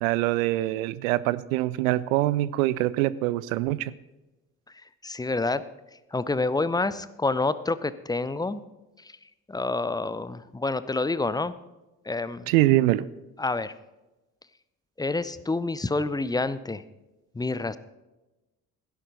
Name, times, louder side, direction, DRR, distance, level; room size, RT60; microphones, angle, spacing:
voice 1, 0.0-3.9 12.5-13.0, right 16 dB, 65° right, 18 dB, 0.6 m, -24 dB
voice 2, 4.7-5.6 6.1-8.6 9.0-11.5 12.0-12.5 13.4-13.7 15.0-16.8 17.3-17.8, left 3 dB, 10° left, 15 dB, 0.6 m, -28 dB
16.0 x 10.5 x 4.0 m, 1.0 s
figure-of-eight pair, 45°, 44 cm